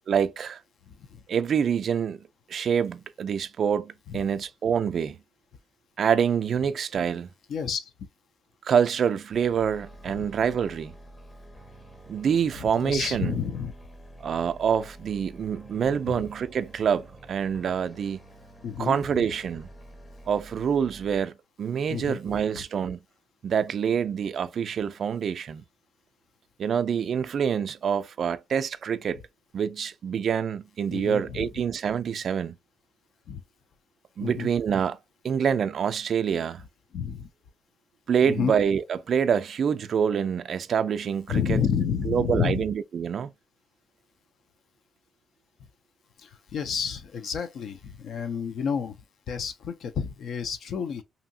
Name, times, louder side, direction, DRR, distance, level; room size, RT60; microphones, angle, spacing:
voice 1, 0.1-0.6 1.3-2.2 2.5-5.2 6.0-7.3 8.6-10.9 12.1-13.4 14.2-18.2 18.8-19.7 20.3-23.0 23.4-25.6 26.6-29.2 29.5-32.6 34.2-35.0 35.2-36.6 38.1-41.6 42.1-43.3, right 7 dB, 55° right, 0.3 m, -26 dB
voice 2, 0.9-1.2 4.1-4.2 7.5-7.9 10.2-10.3 12.6-13.7 16.1-16.2 18.6-19.0 21.9-22.6 30.9-31.5 33.3-33.4 34.2-34.5 36.9-37.3 38.2-38.5 41.3-42.7 46.2-49.0 49.3-51.0, left 7 dB, 65° left, 0.4 m, -30 dB
sound 1, 9.3-21.2, right 1 dB, 15° left, 0.6 m, -49 dB
2.7 x 2.6 x 2.6 m
cardioid pair, 90°, 0 cm